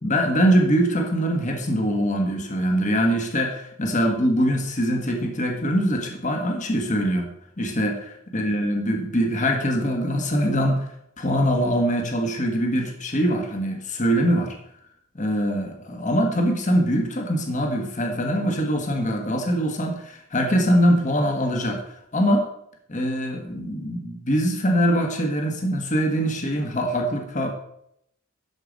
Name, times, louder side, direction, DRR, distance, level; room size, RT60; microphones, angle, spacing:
voice 1, 0.0-7.3 7.6-10.9 11.2-14.5 15.1-21.8 22.1-22.5 22.9-27.5, equal, 35° left, 2 dB, 1.3 m, -23 dB
12.0 x 4.8 x 5.1 m, 0.74 s
head